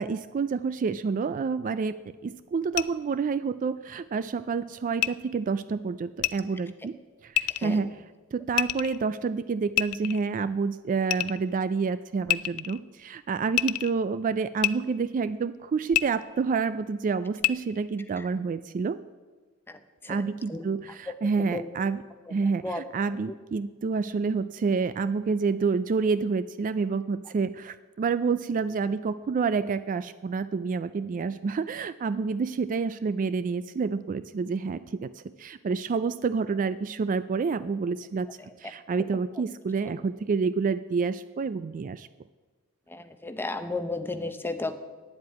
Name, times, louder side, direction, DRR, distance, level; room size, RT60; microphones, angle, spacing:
voice 1, 0.0-1.9 2.2-7.0 7.2-8.0 8.3-19.0 20.1-22.0 22.3-38.3 38.6-42.1, right 5 dB, 35° right, 14 dB, 0.3 m, -28 dB
sound 1, 2.7-2.8 5.0-5.1 6.2-6.3 7.4-7.7 8.6-9.0 9.8-10.3 11.1-11.4 12.3-12.8 13.5-13.9 14.6-14.7 15.9-16.0 17.4-17.5, left 16 dB, 85° left, 0.4 m, -26 dB
voice 2, 42.9-44.8, left 2 dB, 10° left, 8 dB, 0.8 m, -32 dB
9.5 x 7.7 x 9.4 m, 1.3 s
head